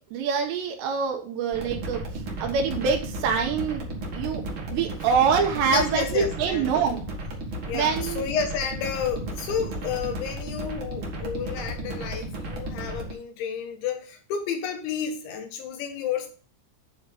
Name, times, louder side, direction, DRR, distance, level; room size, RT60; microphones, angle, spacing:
voice 1, 0.1-2.0 2.4-3.9 4.1-4.4 4.7-7.0 7.7-8.3, right 6 dB, 80° right, 3.1 m, -25 dB
sound 1, 1.5-13.1, right 1 dB, 55° right, 1.5 m, -34 dB
voice 2, 5.7-6.7 7.7-16.3, left 7 dB, 85° left, 3.7 m, -31 dB
9.6 x 4.3 x 5.3 m
omnidirectional pair, 5.2 m